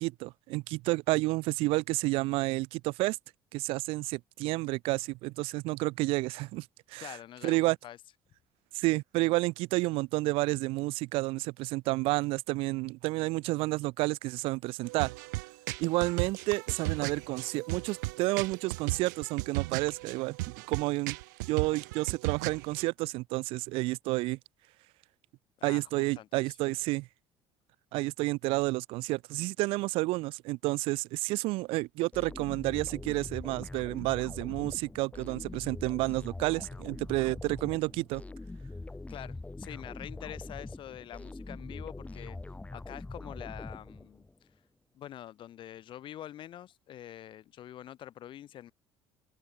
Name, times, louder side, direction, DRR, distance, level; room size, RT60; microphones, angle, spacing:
voice 1, 0.0-3.2 3.5-7.2 7.4-7.8 8.7-15.1 15.8-20.4 20.7-21.2 21.5-24.4 25.6-27.1 27.9-38.2, right 22 dB, 75° right, 0.4 m, -30 dB
voice 2, 7.0-7.6 7.8-8.0 25.6-26.6 39.1-42.4 42.7-44.3 44.9-48.7, left 11 dB, 60° left, 2.3 m, -46 dB
sound 1, 14.8-22.8, right 23 dB, 90° right, 1.8 m, -36 dB
sound 2, 32.1-44.3, left 2 dB, 15° left, 1.4 m, -43 dB
open air
supercardioid pair, 70°, 10 cm